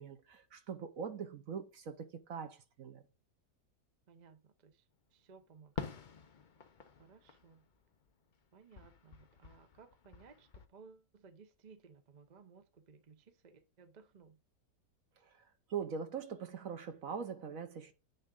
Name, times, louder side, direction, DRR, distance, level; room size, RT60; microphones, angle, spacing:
voice 1, 0.0-3.0 15.2-15.4 15.7-17.9, right 6 dB, 55° right, 1.1 m, -42 dB
voice 2, 4.1-6.1 7.0-7.7 8.5-14.4, right 5 dB, 40° right, 0.6 m, -60 dB
Fireworks, 5.8-8.4 8.7-10.7, left 6 dB, 60° left, 0.5 m, -48 dB
9.8 x 3.6 x 5.3 m
omnidirectional pair, 1.9 m